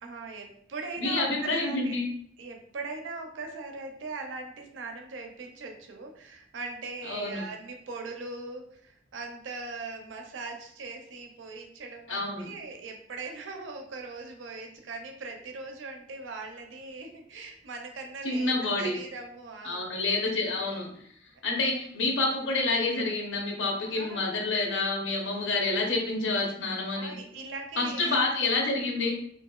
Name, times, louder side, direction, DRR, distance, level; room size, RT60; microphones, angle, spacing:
voice 1, 0.0-2.0 2.4-19.9 23.8-24.4 26.9-28.5, right 3 dB, 80° right, 4 dB, 0.4 m, -40 dB
voice 2, 1.0-2.1 7.0-7.5 12.1-12.5 18.2-19.0 19.6-20.9 21.4-27.2 27.8-29.2, left 2 dB, 90° left, 0 dB, 0.7 m, -28 dB
2.8 x 2.5 x 2.2 m, 0.67 s
head